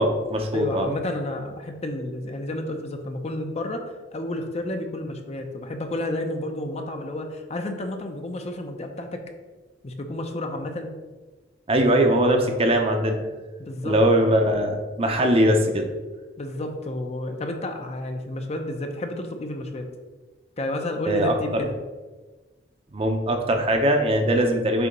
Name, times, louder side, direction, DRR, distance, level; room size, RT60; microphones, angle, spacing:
voice 1, 0.0-0.9 11.7-13.2 13.8-15.9 21.1-21.6 22.9-24.9, right 1 dB, 35° right, 4 dB, 0.7 m, -21 dB
voice 2, 0.5-3.9 4.1-9.2 9.8-10.9 13.6-14.3 16.4-19.9 20.6-21.8, left 1 dB, 35° left, 4 dB, 0.6 m, -31 dB
6.9 x 2.8 x 5.2 m, 1.3 s
head